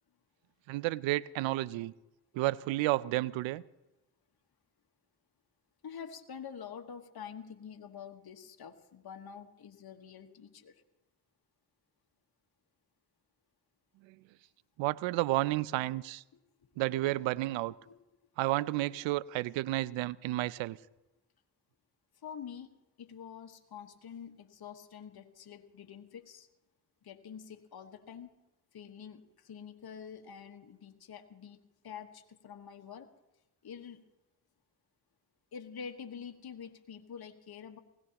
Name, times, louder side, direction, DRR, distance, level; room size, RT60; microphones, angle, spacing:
voice 1, 0.7-1.9 2.3-3.6 14.1-14.2 14.8-16.2 16.8-17.7 18.4-20.8, right 18 dB, 85° right, 20 dB, 0.5 m, -31 dB
voice 2, 5.8-10.8 15.9-16.0 16.6-16.7 17.8-18.0 22.2-22.7 23.0-26.5 27.0-28.3 28.7-33.1 33.6-34.0 35.5-37.8, left 7 dB, 55° left, 5 dB, 1.4 m, -47 dB
19.5 x 17.0 x 2.9 m, 0.99 s
supercardioid pair, 40°, 44 cm